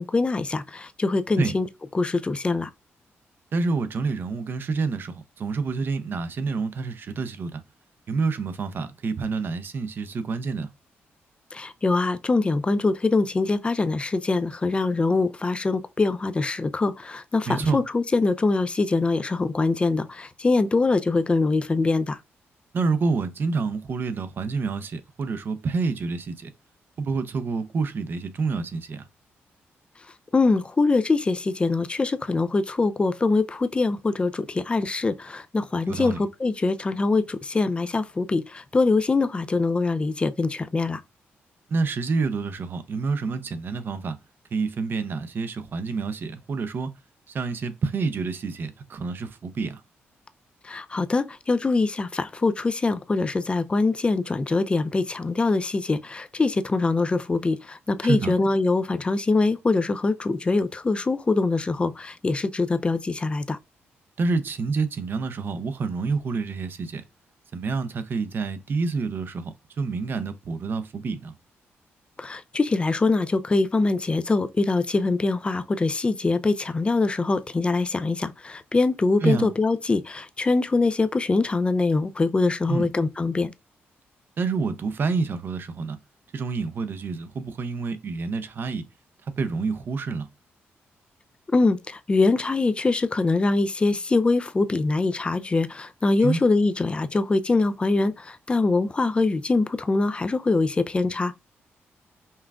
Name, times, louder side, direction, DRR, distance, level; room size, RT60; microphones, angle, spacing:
voice 1, 0.0-1.7 1.9-2.7 11.5-22.2 30.3-41.0 50.6-63.6 72.2-83.5 91.5-101.3, left 3 dB, 25° left, 0.3 m, -23 dB
voice 2, 3.5-7.6 8.1-10.7 17.5-17.8 22.7-26.5 27.0-29.1 35.9-36.2 41.7-44.2 44.5-46.9 47.3-49.8 58.0-58.3 64.2-67.0 67.5-71.3 79.2-79.5 82.7-82.9 84.4-86.0 86.3-88.8 89.2-90.3 96.2-96.4, right 4 dB, 55° right, 0.5 m, -28 dB
5.4 x 2.4 x 2.3 m
cardioid pair, 90°, 4 cm